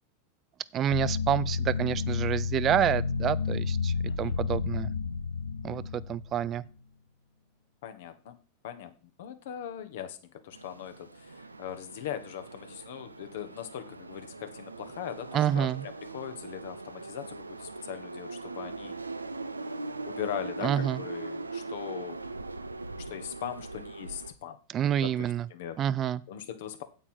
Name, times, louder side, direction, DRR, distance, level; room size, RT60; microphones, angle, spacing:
voice 1, 0.7-4.9 5.6-6.6 15.3-15.8 20.6-21.0 24.7-25.4 25.8-26.2, right 10 dB, 35° right, 18 dB, 0.5 m, -28 dB
sound 1, 0.9-6.7, left 5 dB, 80° left, 0.4 m, -31 dB
voice 2, 4.1-4.4 7.8-8.4 8.6-10.2 10.4-19.0 20.0-22.2 23.1-24.6 25.0-25.8 26.3-26.8, left 10 dB, 60° left, 9 dB, 1.4 m, -40 dB
sound 2, 10.5-24.3, right 3 dB, 90° right, 0.6 m, -41 dB
8.9 x 8.6 x 4.5 m, 0.35 s
figure-of-eight pair, 90°, 0 cm